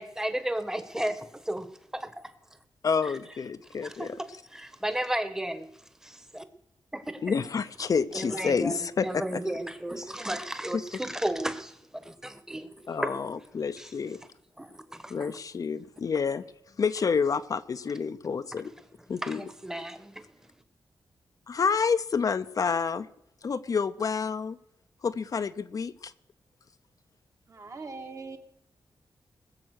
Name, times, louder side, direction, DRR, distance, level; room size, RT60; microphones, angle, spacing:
voice 1, 0.0-1.7 1.9-2.1 3.8-5.7 6.0-6.4 6.9-7.5 8.1-13.2 13.8-13.9 14.6-15.4 19.2-20.2, right 1 dB, 5° right, 1.1 m, -34 dB
voice 2, 2.8-4.2 7.2-9.4 10.7-10.8 12.9-14.2 15.1-16.4 16.8-18.7 19.1-19.4 21.5-23.1 23.4-24.6 25.0-26.1, left 5 dB, 55° left, 0.6 m, -29 dB
voice 3, 27.5-28.4, right 4 dB, 45° right, 1.7 m, -41 dB
20.0 x 7.4 x 6.5 m
cardioid pair, 90°, 7 cm